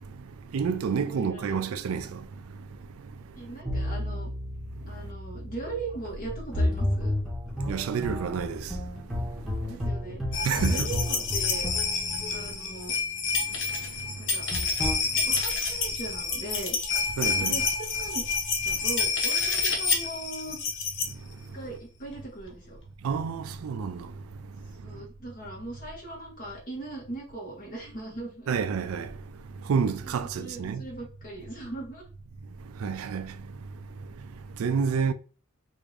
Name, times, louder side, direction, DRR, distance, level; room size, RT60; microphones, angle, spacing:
voice 1, 0.0-3.2 4.8-5.0 7.6-9.6 10.4-10.9 12.1-12.5 13.6-14.3 15.0-15.2 17.2-17.6 21.1-21.5 23.0-24.2 24.6-25.1 28.5-29.2 29.5-30.8 32.6-35.1, right 6 dB, 70° right, 0.4 m, -31 dB
voice 2, 0.8-1.6 3.3-4.3 4.9-7.1 9.6-10.2 10.5-11.7 12.3-13.0 14.2-14.5 15.1-16.8 17.4-18.2 18.6-20.6 21.5-22.8 24.8-28.5 30.0-32.0, right 2 dB, 40° left, 1.6 m, -39 dB
sound 1, 3.6-13.0 14.5-14.9, left 1 dB, 5° right, 1.1 m, -32 dB
sound 2, 10.3-21.1 22.2-22.3 22.4-22.5, left 4 dB, 60° left, 0.7 m, -28 dB
3.5 x 2.6 x 3.3 m
head